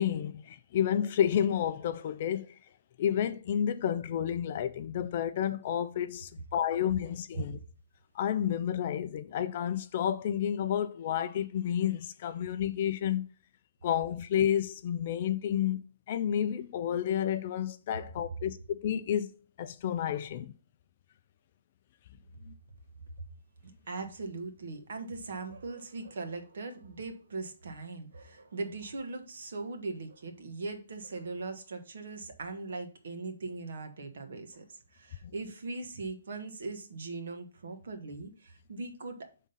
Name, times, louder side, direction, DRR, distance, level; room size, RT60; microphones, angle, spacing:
voice 1, 0.0-2.6 3.0-7.6 8.1-13.2 13.8-15.8 16.1-19.3 19.6-20.5 22.5-22.6, left 9 dB, 30° left, 0.4 m, -30 dB
voice 2, 23.6-39.3, right 3 dB, 60° right, 1.2 m, -40 dB
5.5 x 3.6 x 5.5 m
hypercardioid pair, 180°, 0 cm